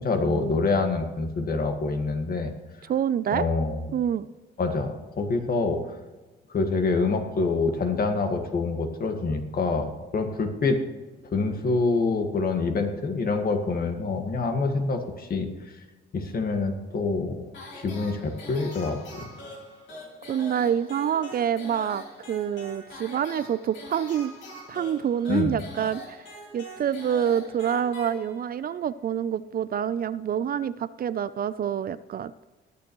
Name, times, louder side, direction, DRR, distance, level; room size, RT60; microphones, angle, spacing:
voice 1, 0.0-2.5 3.3-3.9 4.6-5.9 6.5-10.8 11.3-15.5 16.1-17.4 17.7-19.3 25.3-25.5, left 3 dB, 50° left, 5 dB, 1.7 m, -26 dB
voice 2, 2.9-3.5 3.9-4.3 20.3-24.3 24.7-26.2 26.5-32.3, right 9 dB, 50° right, 16 dB, 0.4 m, -27 dB
sound 1, 17.5-28.7, left 1 dB, 70° left, 3.5 m, -43 dB
20.5 x 6.9 x 3.1 m, 1.2 s
cardioid pair, 90°, 20 cm